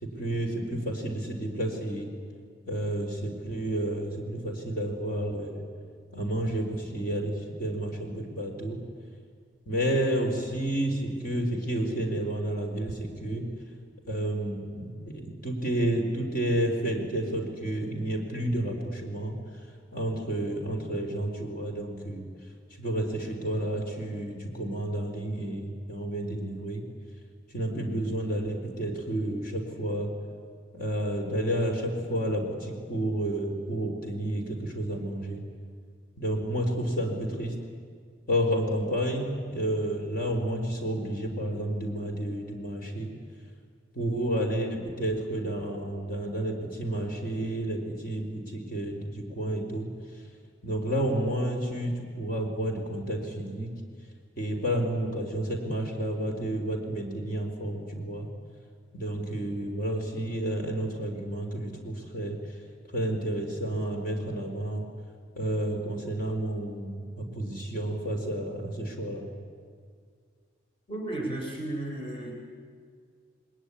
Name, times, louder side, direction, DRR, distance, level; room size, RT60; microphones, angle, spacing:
voice 1, 0.0-2.1 2.7-5.6 6.1-8.8 9.7-13.5 14.0-19.4 19.9-22.3 22.8-26.8 27.5-30.1 30.7-35.4 36.2-37.6 38.3-43.1 43.9-49.9 50.6-53.7 54.4-58.3 58.9-62.4 62.9-64.9 65.3-69.3, right 1 dB, 45° left, 2 dB, 4.0 m, -30 dB
voice 2, 70.9-72.3, right 1 dB, 25° left, 1 dB, 3.6 m, -33 dB
28.5 x 20.5 x 9.9 m, 2.1 s
head